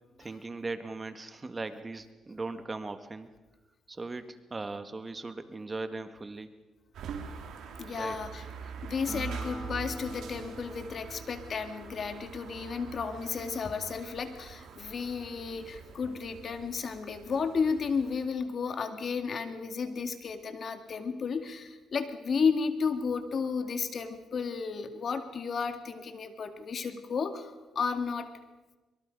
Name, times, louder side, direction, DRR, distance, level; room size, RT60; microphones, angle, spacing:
voice 1, 0.2-3.3 3.9-6.5 7.9-8.2, right 3 dB, 25° right, 9 dB, 1.4 m, -39 dB
sound 1, 6.9-18.2, right 6 dB, 75° right, 3.2 m, -44 dB
voice 2, 7.8-28.3, left 5 dB, 50° left, 8 dB, 2.1 m, -33 dB
Acoustic guitar, 9.1-12.7, equal, 5° right, 2.1 m, -46 dB
24.0 x 23.5 x 5.2 m, 1.2 s
cardioid pair, 90°, 0 cm